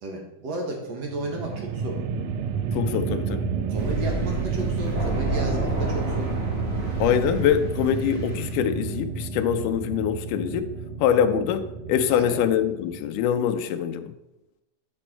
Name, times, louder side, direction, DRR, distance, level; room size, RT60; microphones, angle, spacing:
voice 1, 0.0-2.0 3.7-6.3 12.1-12.4, right 2 dB, 55° right, 0 dB, 2.4 m, -33 dB
sound 1, 1.1-13.4, right 5 dB, 80° right, 1.6 m, -30 dB
voice 2, 2.7-3.5 7.0-10.7 11.0-14.1, left 9 dB, 80° left, 8 dB, 2.1 m, -24 dB
Thunder, 3.8-8.6, right 1 dB, 40° right, 1.0 m, -31 dB
9.6 x 5.3 x 4.4 m, 0.92 s
omnidirectional pair, 3.8 m